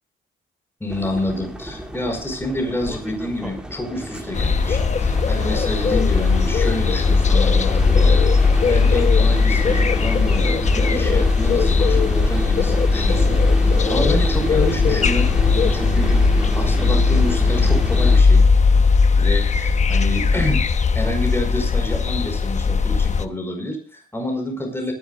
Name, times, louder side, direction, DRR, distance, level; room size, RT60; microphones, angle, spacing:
voice 1, 0.8-13.4 13.6-16.2 16.5-18.4 19.2-24.9, left 1 dB, 10° left, 4 dB, 5.0 m, -28 dB
sound 1, 0.9-18.2, right 1 dB, 5° right, 2.6 m, -29 dB
sound 2, 4.3-23.3, left 4 dB, 35° left, 1.0 m, -18 dB
24.5 x 11.0 x 2.4 m, 0.42 s
cardioid pair, 90°, 20 cm